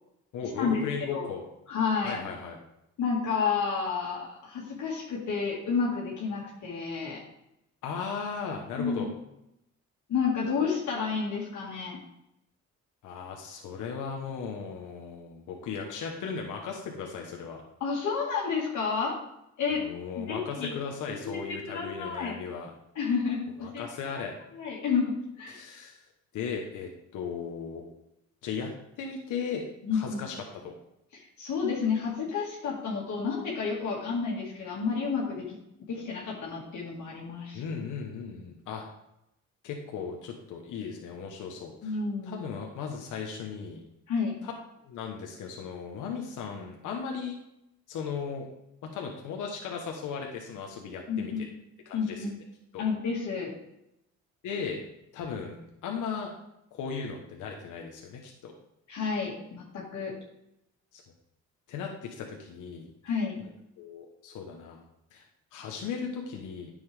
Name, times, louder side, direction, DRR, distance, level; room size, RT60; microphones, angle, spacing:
voice 1, 0.3-1.4 2.0-2.6 7.8-9.1 13.0-17.6 19.7-22.7 23.6-24.3 25.5-26.0 26.3-27.9 28.4-28.7 29.0-29.6 29.9-30.7 37.5-38.8 39.6-42.0 42.2-43.8 44.4-44.5 44.8-47.4 47.9-48.5 48.8-51.3 51.9-52.2 52.7-52.8 54.4-54.8 55.1-56.3 56.7-58.5 60.9-61.0 61.7-62.9 63.8-64.9 65.1-65.2 65.5-66.7, left 6 dB, 85° left, 1 dB, 1.3 m, -36 dB
voice 2, 1.7-2.2 3.0-7.2 8.8-9.0 10.1-12.0 17.8-19.2 19.6-19.8 20.2-20.8 21.2-21.4 21.7-22.3 23.0-23.8 24.5-25.6 29.8-30.2 31.1-35.5 35.9-37.6 41.8-42.4 44.1-44.4 51.1-51.5 51.9-52.3 52.8-53.5 58.9-60.1 63.0-63.4, left 5 dB, 70° left, -5 dB, 2.3 m, -30 dB
9.9 x 7.1 x 3.5 m, 0.83 s
cardioid pair, 90°, 30 cm